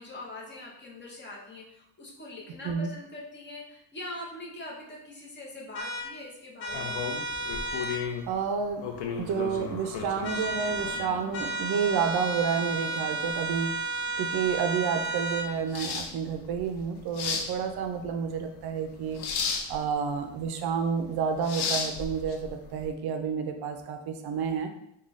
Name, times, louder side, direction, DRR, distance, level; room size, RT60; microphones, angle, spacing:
voice 1, 0.0-7.0, left 2 dB, 25° left, -3 dB, 0.7 m, -42 dB
sound 1, 5.7-6.0 6.6-8.0 10.2-11.0 11.3-15.5, right 3 dB, 85° left, 0.9 m, -32 dB
sound 2, 6.7-22.9, left 5 dB, 60° left, 0.5 m, -36 dB
voice 2, 8.3-13.7 14.2-19.2 19.7-24.7, right 6 dB, 60° right, 6 dB, 0.5 m, -30 dB
3.8 x 2.3 x 3.1 m, 0.79 s
cardioid pair, 160°, 45 cm